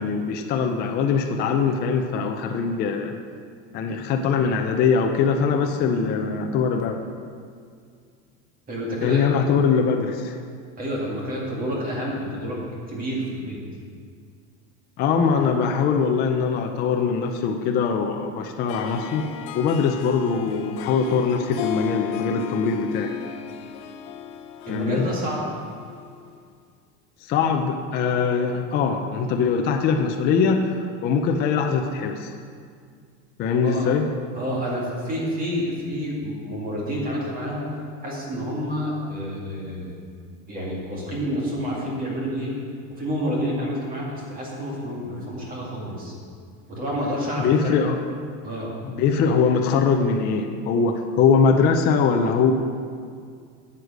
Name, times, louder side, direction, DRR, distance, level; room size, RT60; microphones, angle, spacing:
voice 1, 0.0-3.1 3.7-7.0 9.0-10.4 15.0-19.3 19.5-23.1 24.7-25.1 27.2-32.3 33.4-34.1 47.4-48.0 48.8-52.5, left 5 dB, 25° left, 3 dB, 0.4 m, -22 dB
voice 2, 8.7-9.3 10.8-12.6 12.9-13.6 24.7-25.4 33.6-33.9 34.4-39.9 40.5-42.6 42.9-46.1 46.7-47.8 48.4-48.7, equal, 25° right, -3 dB, 2.2 m, -29 dB
Harp, 18.7-26.4, left 9 dB, 65° left, 0.8 m, -35 dB
9.7 x 8.1 x 6.2 m, 2.2 s
cardioid pair, 180°, 37 cm